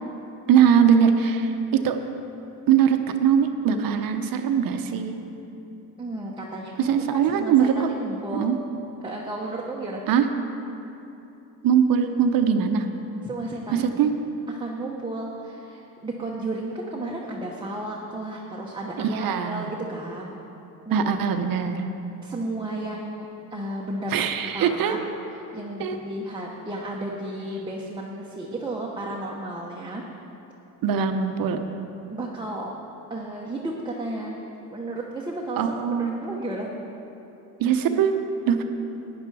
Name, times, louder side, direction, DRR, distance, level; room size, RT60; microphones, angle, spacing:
voice 1, 0.5-2.0 2.7-5.2 6.8-7.9 8.3-8.6 10.1-10.3 11.6-12.9 13.7-14.1 19.0-19.7 20.9-21.8 24.1-25.0 25.8-26.0 30.8-31.7 35.6-36.2 37.6-38.6, right 7 dB, 65° right, 7 dB, 0.9 m, -21 dB
voice 2, 6.0-8.5 9.0-10.0 13.2-13.9 14.5-20.3 20.9-21.0 22.2-23.3 23.5-24.3 24.5-25.0 25.5-30.0 32.1-32.7 33.1-34.4 34.7-35.6 35.9-36.7, right 1 dB, 10° right, -3 dB, 0.9 m, -33 dB
13.0 x 9.6 x 4.7 m, 2.9 s
cardioid pair, 125°, 37 cm